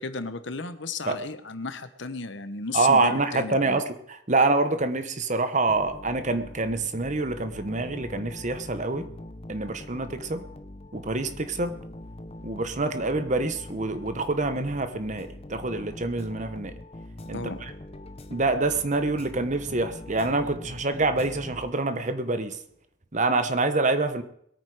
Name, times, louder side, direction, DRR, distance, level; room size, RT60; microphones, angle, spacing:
voice 1, 0.0-3.8 17.3-17.7, left 4 dB, 60° left, 11 dB, 1.0 m, -34 dB
voice 2, 2.7-9.0 9.5-10.4 10.9-11.7 12.4-16.7 17.3-17.7 18.3-22.6 23.1-24.2, right 3 dB, 35° right, 10 dB, 1.1 m, -26 dB
sound 1, 5.7-22.1, left 1 dB, 30° left, 0.8 m, -43 dB
21.5 x 9.1 x 4.9 m, 0.70 s
head